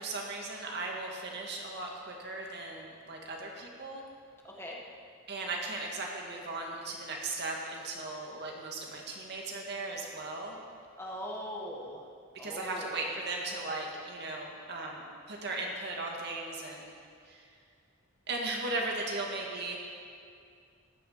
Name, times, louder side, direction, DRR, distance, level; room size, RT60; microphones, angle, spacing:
voice 1, 0.0-4.0 5.3-10.6 12.3-16.9 17.3-17.5 18.3-19.8, right 2 dB, 55° right, 0 dB, 2.0 m, -37 dB
voice 2, 4.4-4.8 11.0-12.0 12.4-13.0, equal, 15° left, -2 dB, 1.6 m, -40 dB
14.5 x 10.5 x 5.7 m, 2.3 s
head